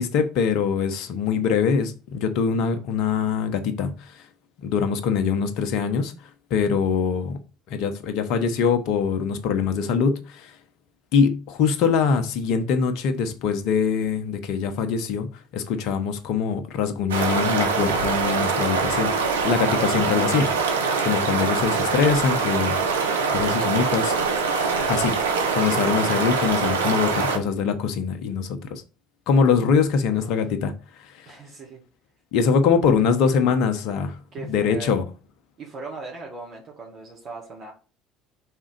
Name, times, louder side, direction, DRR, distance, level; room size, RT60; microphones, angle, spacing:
voice 1, 0.0-3.9 4.6-6.1 6.5-7.4 7.7-10.5 11.1-15.3 15.5-19.1 19.4-20.5 21.0-22.8 23.3-24.4 24.9-25.2 25.5-28.8 29.3-30.7 32.3-34.2 34.4-35.0, left 6 dB, 65° left, 1.0 m, -23 dB
sound 1, 17.1-27.4, right 5 dB, 90° right, 0.9 m, -23 dB
voice 2, 30.0-30.5 31.3-31.8 34.3-35.0 35.6-37.7, right 3 dB, 55° right, 2.0 m, -39 dB
5.5 x 3.7 x 5.1 m
hypercardioid pair, 65°, 0 cm